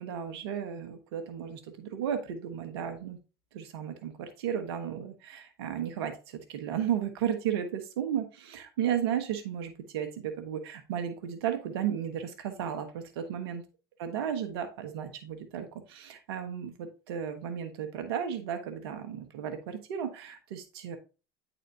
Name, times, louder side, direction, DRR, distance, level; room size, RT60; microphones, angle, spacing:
voice 1, 0.0-3.2 3.5-13.6 14.0-21.0, right 9 dB, 80° right, 7 dB, 1.1 m, -34 dB
9.0 x 4.1 x 2.8 m, 0.31 s
hypercardioid pair, 85°, 13 cm